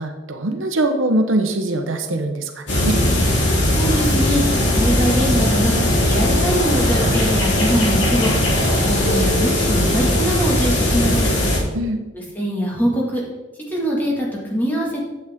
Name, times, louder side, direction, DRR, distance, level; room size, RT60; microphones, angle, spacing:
voice 1, 0.0-3.0 11.7-12.0, right 1 dB, 85° right, 6 dB, 0.9 m, -22 dB
sound 1, 2.7-11.6, left 1 dB, 65° left, 2.4 m, -18 dB
voice 2, 3.7-4.4 4.7-5.8 6.0-8.3 8.8-11.3 12.1-13.2 13.7-15.0, equal, 10° left, -3 dB, 1.9 m, -22 dB
9.2 x 7.8 x 3.6 m, 1.1 s
head